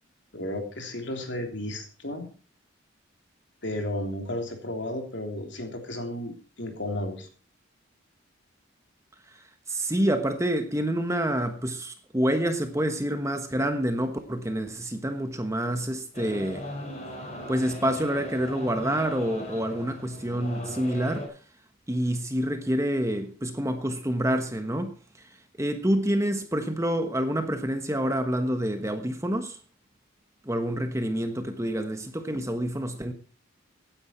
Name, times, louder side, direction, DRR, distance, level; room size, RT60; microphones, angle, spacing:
voice 1, 0.3-2.3 3.6-7.3, left 1 dB, 60° left, 3.3 m, -33 dB
voice 2, 9.7-16.7 17.5-21.3 21.9-25.0 25.6-29.6 30.4-33.1, equal, 15° right, 1.2 m, -27 dB
sound 1, 16.1-21.3, left 1 dB, 35° left, 5.0 m, -39 dB
16.5 x 9.9 x 4.5 m
head